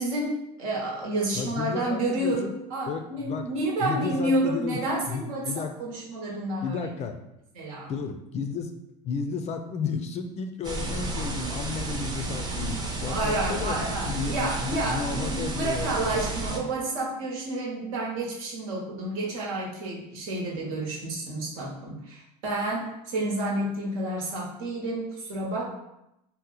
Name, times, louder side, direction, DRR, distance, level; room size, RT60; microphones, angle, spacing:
voice 1, 0.0-6.9 7.5-7.9 13.1-25.7, right 2 dB, 80° right, -2 dB, 1.0 m, -30 dB
voice 2, 1.3-2.5 2.9-4.8 5.1-5.7 6.6-7.2 7.9-8.7 9.0-16.0, left 5 dB, 35° left, 7 dB, 0.4 m, -33 dB
sound 1, 10.6-16.6, right 2 dB, 25° right, 0.6 m, -32 dB
2.8 x 2.1 x 3.9 m, 0.86 s
supercardioid pair, 100°, 18 cm